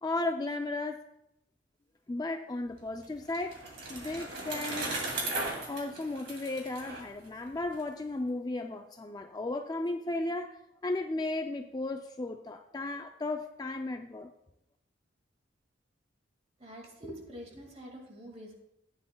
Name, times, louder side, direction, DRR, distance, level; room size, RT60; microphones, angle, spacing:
voice 1, 0.0-1.0 2.1-3.6 3.9-4.9 5.7-10.6 10.8-14.3, left 2 dB, 20° left, 6 dB, 0.3 m, -35 dB
Bicycle, 2.7-7.8, right 2 dB, 55° right, 2.5 m, -37 dB
voice 2, 16.6-18.5, equal, 30° right, 1 dB, 2.0 m, -46 dB
14.5 x 9.9 x 2.2 m, 0.83 s
head